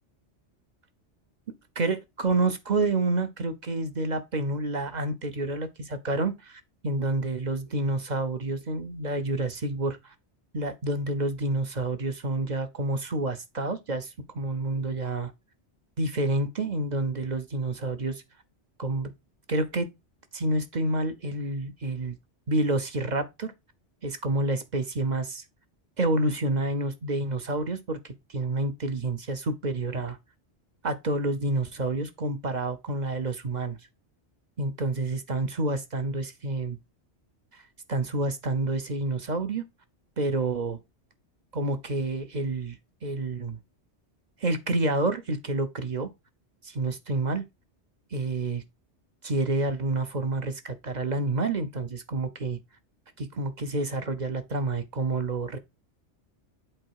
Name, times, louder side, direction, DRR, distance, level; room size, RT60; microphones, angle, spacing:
voice 1, 1.8-10.1 10.5-15.3 16.0-18.2 18.8-19.1 19.5-19.9 20.3-22.2 22.5-23.5 24.0-25.4 26.0-30.2 30.8-33.8 34.6-36.8 37.5-37.6 37.9-39.6 40.2-40.8 41.5-43.6 44.4-46.1 46.6-47.4 48.1-48.6 49.2-52.6 53.2-55.6, right 2 dB, 45° right, 0.8 m, -29 dB
7.9 x 4.2 x 4.6 m
omnidirectional pair, 1.2 m